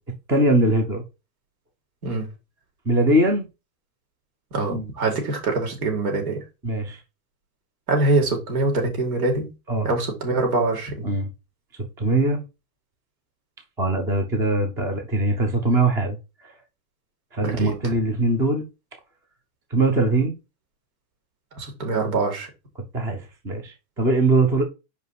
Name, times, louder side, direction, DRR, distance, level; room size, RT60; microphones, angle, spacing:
voice 1, 0.3-1.0 2.9-3.5 4.7-4.9 6.6-7.0 9.7-9.9 11.0-11.3 12.0-12.4 13.8-16.2 16.4-16.5 17.3-18.7 19.7-20.3 22.9-24.6, right 2 dB, 5° right, 0.4 m, -21 dB
voice 2, 4.5-6.4 7.9-9.5 9.8-11.1 17.4-17.8 21.5-22.5, right 2 dB, 75° right, 4.2 m, -24 dB
5.4 x 5.1 x 4.6 m
supercardioid pair, 165°, 44 cm